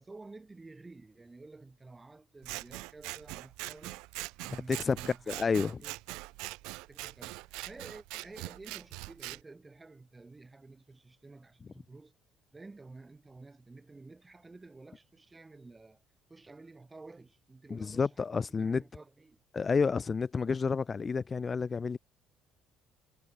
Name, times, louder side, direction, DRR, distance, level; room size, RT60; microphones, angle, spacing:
voice 1, 0.0-4.0 4.4-6.0 6.9-12.1 12.5-16.0 16.3-19.4, right 3 dB, 20° right, 3.8 m, -52 dB
Scissors, 2.4-9.4, right 24 dB, 90° right, 2.0 m, -42 dB
voice 2, 5.3-5.8 17.7-18.8 19.5-22.0, left 5 dB, 30° left, 0.7 m, -30 dB
cardioid pair, 100°, 0 cm